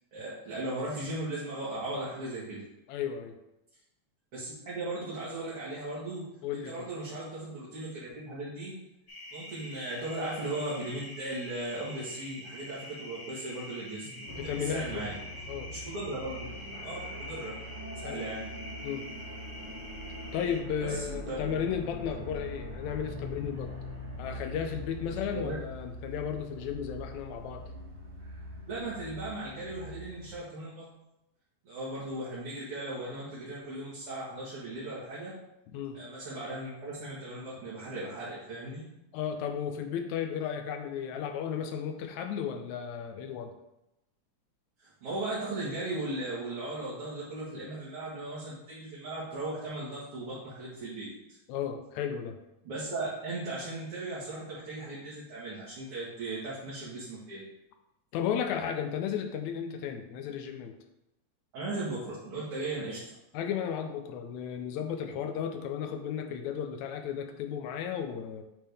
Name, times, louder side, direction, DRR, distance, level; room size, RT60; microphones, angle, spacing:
voice 1, 0.1-2.6 4.3-8.7 9.3-15.1 15.7-16.5 16.8-17.6 18.0-18.5 20.8-21.6 25.1-25.6 28.7-30.9 31.6-35.4 35.9-38.9 44.8-51.1 52.6-57.4 61.5-63.1, right 2 dB, 55° right, -9 dB, 2.3 m, -37 dB
voice 2, 2.9-3.4 6.4-6.7 14.1-15.1 15.5-15.7 18.0-18.2 18.8-19.1 20.3-23.7 24.2-27.6 35.7-36.0 39.1-43.5 51.5-52.4 58.1-60.7 63.3-68.4, left 8 dB, 80° left, 6 dB, 1.9 m, -34 dB
sound 1, 9.1-20.6, left 1 dB, 40° left, 2.0 m, -45 dB
sound 2, 14.3-30.4, equal, 15° right, 1.1 m, -43 dB
8.4 x 3.6 x 3.4 m, 0.89 s
omnidirectional pair, 3.4 m